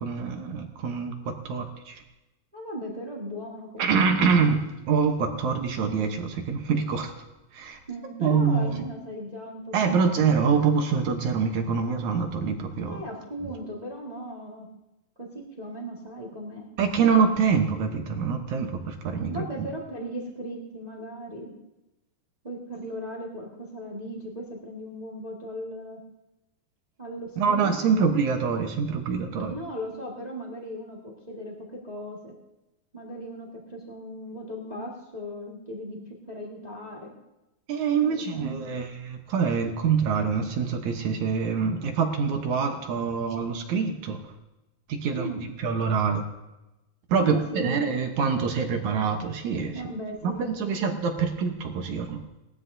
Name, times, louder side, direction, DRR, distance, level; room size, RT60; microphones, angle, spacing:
voice 1, 0.0-2.0 3.8-7.1 7.5-7.8 8.2-8.8 9.7-13.0 16.8-19.4 27.4-29.5 37.7-44.2 44.9-45.3 45.6-46.3 47.1-49.8 50.2-52.2, right 5 dB, 65° right, 4 dB, 2.1 m, -25 dB
voice 2, 2.5-4.3 7.9-10.1 12.9-14.7 15.2-16.7 19.3-21.5 22.4-26.0 27.0-28.0 29.5-32.3 32.9-36.0 36.3-37.1 38.0-38.6 45.1-45.4 47.2-47.8 49.7-50.9, equal, 30° right, -2 dB, 0.7 m, -37 dB
19.5 x 13.5 x 2.7 m, 0.98 s
omnidirectional pair, 4.3 m